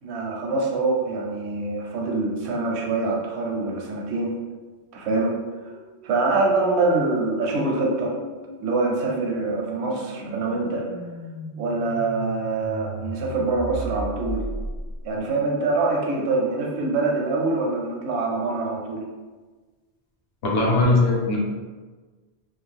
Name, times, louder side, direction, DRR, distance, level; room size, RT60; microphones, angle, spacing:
voice 1, 0.0-4.3 4.9-5.3 5.7-5.8 6.0-8.2 8.6-10.9 11.5-14.4 15.0-19.0, right 3 dB, 80° right, -1 dB, 0.9 m, -25 dB
sound 1, 5.1-15.2, right 1 dB, 55° right, 0.6 m, -37 dB
voice 2, 20.4-21.4, left 2 dB, 65° left, -3 dB, 0.9 m, -19 dB
2.5 x 2.3 x 3.2 m, 1.4 s
omnidirectional pair, 1.1 m